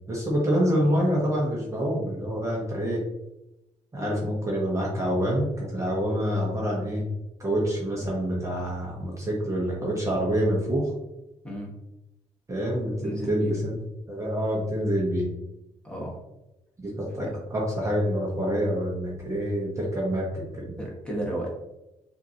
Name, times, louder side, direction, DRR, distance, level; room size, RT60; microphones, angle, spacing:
voice 1, 0.1-3.0 3.9-7.1 7.4-10.9 12.5-13.8 14.1-15.3 16.8-20.7, equal, 25° right, -4 dB, 1.1 m, -26 dB
voice 2, 13.0-13.5 15.8-16.2 17.2-17.3 20.8-21.5, right 1 dB, 5° left, -4 dB, 1.3 m, -33 dB
5.8 x 2.8 x 2.8 m, 0.92 s
cardioid pair, 120°, 13 cm